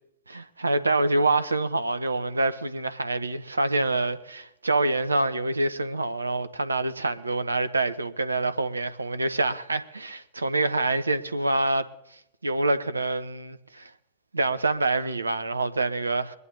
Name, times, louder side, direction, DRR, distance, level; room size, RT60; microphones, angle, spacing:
voice 1, 0.3-11.9 12.4-13.9 14.3-16.4, right 2 dB, 80° right, 0.8 m, -26 dB
24.0 x 11.0 x 2.7 m
figure-of-eight pair, 90°, 0 cm